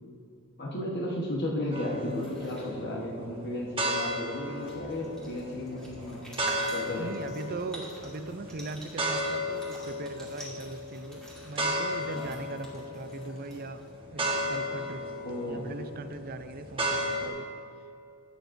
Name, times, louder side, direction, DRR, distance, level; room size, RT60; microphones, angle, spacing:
voice 1, 0.6-6.2 6.7-7.2 12.2-12.3 15.2-15.6, left 1 dB, 50° left, -3 dB, 1.2 m, -34 dB
sound 1, 1.7-17.3, equal, 25° right, 1.1 m, -35 dB
sound 2, 2.0-2.7 4.1-4.2 4.4-14.0, equal, 5° left, 2.0 m, -49 dB
voice 2, 7.0-13.8 14.1-15.1 15.5-17.5, right 3 dB, 40° right, 10 dB, 0.4 m, -40 dB
17.5 x 7.1 x 2.6 m, 2.5 s
head